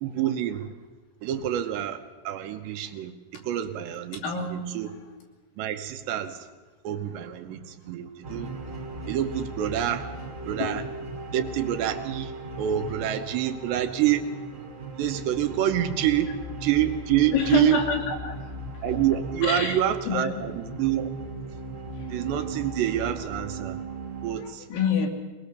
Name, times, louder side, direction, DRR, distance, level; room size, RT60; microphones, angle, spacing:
voice 1, 0.0-0.7 1.2-4.2 4.5-4.9 5.6-6.5 6.8-8.5 9.1-10.1 10.5-10.8 11.3-12.3 12.6-14.3 14.9-17.8 18.8-21.1 22.1-23.8 24.2-24.7, right 11 dB, 75° right, 7 dB, 3.1 m, -27 dB
voice 2, 4.1-5.0 10.6-10.8 15.5-15.6 17.3-18.4 18.7-18.9 19.4-19.8 20.1-20.3 22.0-22.1 22.4-22.5 24.4-25.1, left 6 dB, 90° left, 0 dB, 5.2 m, -28 dB
sound 1, 8.2-24.4, right 2 dB, 30° right, 1.6 m, -38 dB
22.0 x 20.5 x 6.7 m, 1.3 s
omnidirectional pair, 5.3 m